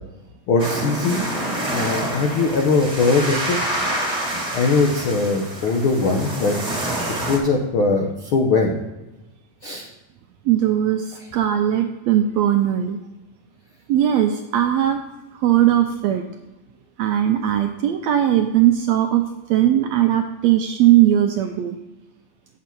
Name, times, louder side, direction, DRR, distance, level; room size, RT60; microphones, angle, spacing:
voice 1, 0.5-1.2 1.7-3.6 4.5-6.5 7.3-8.7 9.6-9.8, left 3 dB, 85° left, 2 dB, 1.1 m, -20 dB
sound 1, 0.6-7.4, right 1 dB, 20° right, 1.1 m, -27 dB
voice 2, 7.0-7.3 10.5-13.0 13.9-15.0 15.4-16.2 17.0-19.2 19.5-21.8, right 11 dB, 80° right, 5 dB, 1.5 m, -19 dB
8.5 x 7.0 x 4.5 m, 1.0 s
omnidirectional pair, 3.6 m